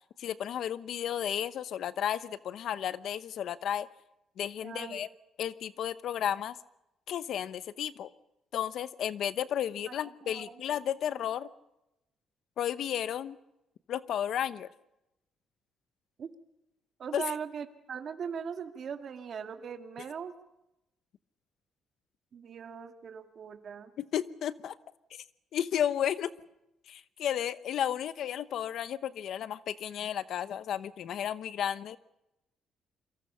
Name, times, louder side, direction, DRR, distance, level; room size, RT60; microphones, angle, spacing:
voice 1, 0.2-3.9 4.4-5.1 5.4-6.6 7.1-8.1 8.5-11.5 12.6-13.4 13.9-14.7 17.1-17.2 24.0-24.8 25.1-25.2 25.5-26.3 26.9-32.0, left 10 dB, 70° left, 14 dB, 0.9 m, -33 dB
voice 2, 4.6-5.0 9.9-10.6 16.2-16.3 17.0-20.3 22.3-23.9, right 7 dB, 50° right, 6 dB, 2.1 m, -40 dB
28.5 x 23.5 x 5.6 m, 0.91 s
cardioid pair, 115°, 0 cm